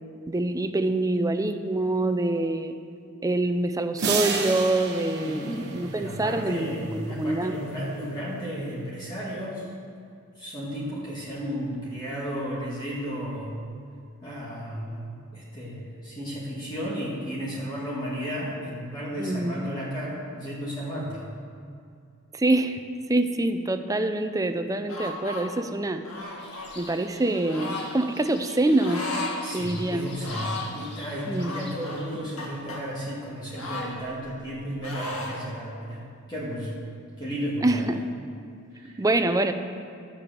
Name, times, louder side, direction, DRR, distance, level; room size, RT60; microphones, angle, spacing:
voice 1, 0.3-2.8 3.2-7.5 19.2-19.6 22.3-22.8 23.1-26.0 26.8-29.0 29.5-30.1 31.3-31.5 37.6-38.0 38.8-39.5, right 2 dB, 15° right, 8 dB, 0.5 m, -25 dB
sound 1, 4.0-6.5, right 5 dB, 50° right, 1.1 m, -30 dB
voice 2, 5.2-9.7 10.4-13.6 14.2-15.0 15.3-21.3 29.4-36.0 36.3-36.7 37.2-37.9 38.7-39.0, equal, 20° left, -7 dB, 1.8 m, -33 dB
sound 2, 24.9-25.4 26.0-26.7 27.5-27.9 28.8-29.4 29.7-29.8 30.2-30.7 31.4-32.8 33.5-34.5 34.8-35.4, left 2 dB, 75° left, 1.9 m, -35 dB
sound 3, 26.4-32.2, left 2 dB, 55° left, 1.9 m, -46 dB
13.0 x 7.0 x 6.7 m, 2.4 s
head